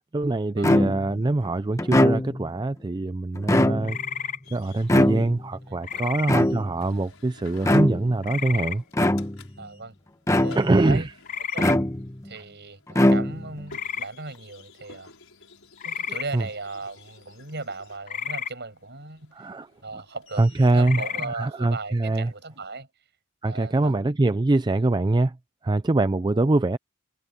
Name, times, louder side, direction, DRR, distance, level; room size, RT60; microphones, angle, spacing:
voice 1, 0.1-4.0 4.5-8.8 10.6-11.1 16.3-16.4 19.3-19.7 20.4-22.3 23.4-25.4 25.6-26.8, right 2 dB, 20° right, 0.4 m, -23 dB
sound 1, 0.6-1.2 1.8-2.5 3.4-4.1 4.9-5.6 6.3-6.9 7.6-8.2 8.9-9.5 10.3-10.9 11.6-12.3 12.9-13.6, left 1 dB, 15° left, 1.0 m, -22 dB
sound 2, 3.8-4.4 5.8-6.3 8.2-8.8 11.2-11.7 13.7-14.1 15.8-16.3 18.1-18.5 20.8-21.3, left 8 dB, 35° left, 0.5 m, -31 dB
vending machine, 4.4-22.8, left 3 dB, 70° left, 6.7 m, -53 dB
voice 2, 5.7-6.4 8.5-8.8 9.6-10.0 10.4-11.1 11.5-11.8 12.2-15.1 15.8-19.5 19.8-20.4 20.7-22.9 23.5-23.9 26.3-26.5, right 3 dB, 50° right, 7.4 m, -37 dB
head